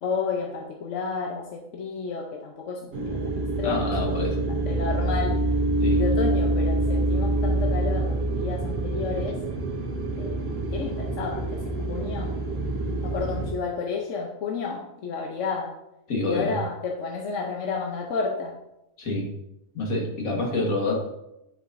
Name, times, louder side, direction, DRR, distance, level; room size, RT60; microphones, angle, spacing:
voice 1, 0.0-3.9 4.5-5.4 5.9-9.4 10.2-10.4 10.7-12.3 13.0-15.7 16.3-18.6, left 5 dB, 65° left, 0 dB, 1.0 m, -31 dB
sound 1, 2.9-13.5, right 2 dB, 80° right, 1.5 m, -26 dB
voice 2, 3.6-4.5 5.8-6.0 16.1-16.6 19.0-19.3 19.7-21.0, left 2 dB, 80° left, -1 dB, 1.9 m, -27 dB
9.8 x 4.7 x 2.6 m, 0.88 s
omnidirectional pair, 1.4 m